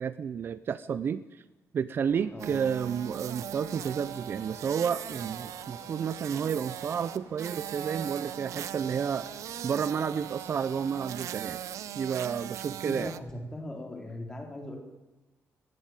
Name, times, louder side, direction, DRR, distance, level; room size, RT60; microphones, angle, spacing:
voice 1, 0.0-1.4 1.7-9.3 9.6-11.6 12.0-13.1, right 7 dB, 45° right, 14 dB, 0.6 m, -31 dB
sound 1, 2.1-11.6, left 7 dB, 45° left, 1.3 m, -56 dB
sound 2, 2.4-13.2, right 10 dB, 85° right, 0.9 m, -40 dB
voice 2, 12.8-14.8, left 1 dB, 10° left, 3 dB, 3.8 m, -39 dB
20.0 x 16.5 x 9.2 m, 1.1 s
wide cardioid pair, 175°, 5 cm